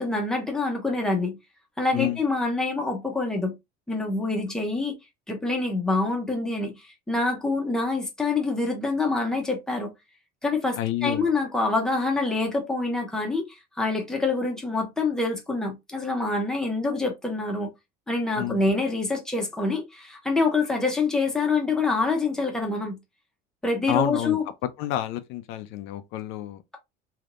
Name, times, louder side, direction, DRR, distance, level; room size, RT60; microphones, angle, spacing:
voice 1, 0.0-1.4 1.8-3.5 3.9-4.9 5.3-9.9 10.4-17.7 18.1-23.0 23.6-24.4, left 3 dB, 5° left, 0.8 m, -26 dB
voice 2, 10.8-11.2 18.4-18.6 23.9-24.4 24.8-26.6, left 13 dB, 75° left, 0.5 m, -29 dB
3.4 x 2.8 x 2.5 m
cardioid pair, 160°, 21 cm